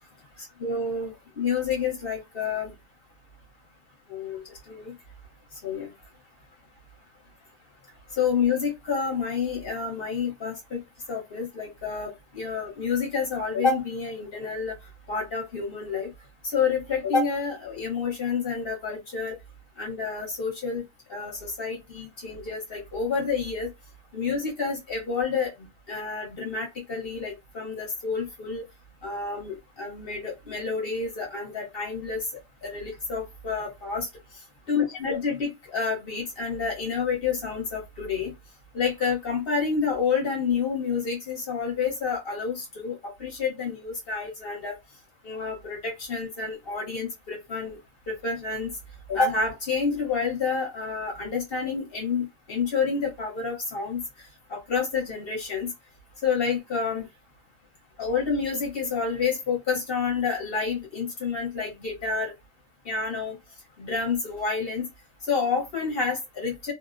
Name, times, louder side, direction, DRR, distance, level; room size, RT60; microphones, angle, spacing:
voice 1, 0.6-2.7 4.1-4.9 5.6-5.9 8.2-10.8 11.1-14.7 15.1-16.1 16.4-19.4 19.8-20.8 21.1-23.7 24.1-28.6 29.0-32.2 32.6-34.1 34.7-38.3 38.7-44.7 45.2-47.8 48.1-48.7 49.1-54.0 54.5-55.7 56.2-57.1 58.0-62.3 62.8-63.4 63.8-64.9 65.3-66.7, left 5 dB, 50° left, 0.9 m, -29 dB
2.5 x 2.0 x 2.4 m
omnidirectional pair, 1.5 m